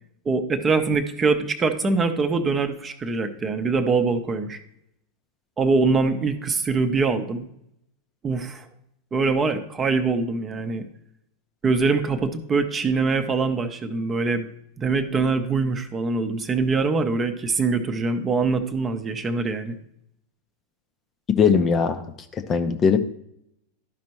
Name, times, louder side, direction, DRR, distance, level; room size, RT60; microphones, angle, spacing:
voice 1, 0.2-4.6 5.6-7.5 8.2-8.7 9.1-10.8 11.6-14.5 14.8-19.8, right 4 dB, 20° right, 8 dB, 0.7 m, -23 dB
voice 2, 21.4-22.0 22.5-23.0, left 6 dB, 25° left, 8 dB, 0.6 m, -19 dB
12.0 x 5.2 x 3.0 m, 0.75 s
figure-of-eight pair, 90°, 0 cm